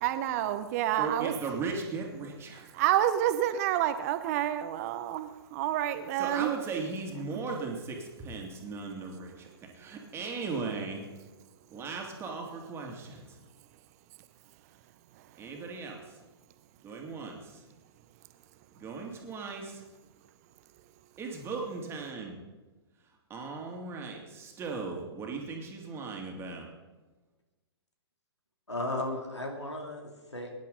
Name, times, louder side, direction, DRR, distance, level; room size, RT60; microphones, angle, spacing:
voice 1, 0.0-1.3 2.7-6.5 15.1-15.4, right 12 dB, 35° right, 11 dB, 0.9 m, -29 dB
voice 2, 1.0-2.7 6.2-11.0 11.7-13.4 15.4-16.2 16.8-17.6 18.7-19.8 21.2-22.4 23.3-26.7, right 4 dB, 15° right, 1 dB, 2.4 m, -37 dB
voice 3, 28.7-30.5, left 2 dB, 85° left, 2 dB, 3.0 m, -35 dB
22.0 x 10.5 x 4.0 m, 1.2 s
figure-of-eight pair, 115°, 14 cm